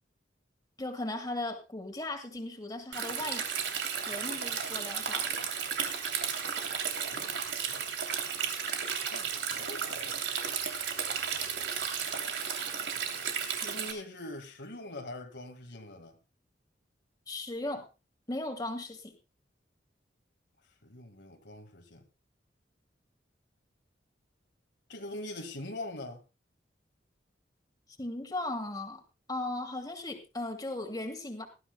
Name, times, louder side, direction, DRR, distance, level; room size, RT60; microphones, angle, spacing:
voice 1, 0.8-3.6 3.9-5.4 17.3-17.9 18.3-19.1 28.0-29.0 29.3-31.5, left 2 dB, 20° left, 2.3 m, -37 dB
Stream, 2.9-13.9, right 7 dB, 75° right, 2.8 m, -34 dB
voice 2, 7.1-7.9 9.1-10.2 13.6-16.2 20.8-22.0 24.9-26.2, left 1 dB, 70° left, 1.9 m, -43 dB
19.5 x 13.0 x 2.2 m
head